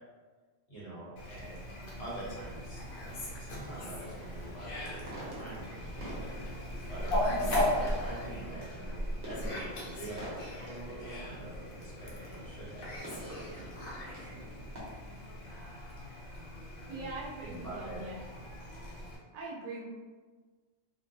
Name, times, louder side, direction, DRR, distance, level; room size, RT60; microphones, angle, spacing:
voice 1, 0.7-1.7 2.0-6.2 6.9-14.3 17.4-18.0, right 1 dB, 60° left, -8 dB, 1.4 m, -45 dB
Fowl, 1.2-19.2, left 1 dB, 85° left, 1.1 m, -38 dB
sound 1, 2.4-14.8, equal, 50° right, 0.9 m, -47 dB
voice 2, 7.2-7.7 16.9-18.2 19.3-19.9, right 3 dB, 85° right, -3 dB, 1.0 m, -42 dB
2.8 x 2.2 x 2.6 m, 1.4 s
omnidirectional pair, 1.4 m